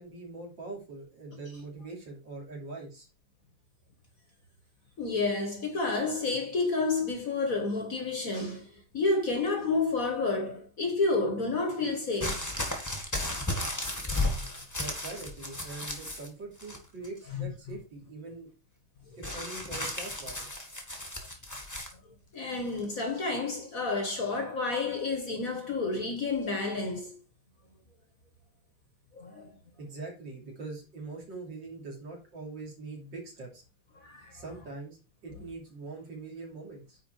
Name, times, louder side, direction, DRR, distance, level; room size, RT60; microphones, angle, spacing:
voice 1, 0.0-3.1 14.8-18.5 19.2-20.5 29.8-33.6 34.3-37.0, right 3 dB, 55° right, 3.6 m, -43 dB
voice 2, 5.0-12.5 17.3-17.5 22.3-27.2 29.1-29.5 34.0-34.3, left 3 dB, 45° left, 1.7 m, -30 dB
sound 1, 12.2-16.3 16.6-17.2 19.2-21.9 22.8-22.9, left 1 dB, 10° left, 1.7 m, -34 dB
9.6 x 4.6 x 4.6 m
omnidirectional pair, 2.3 m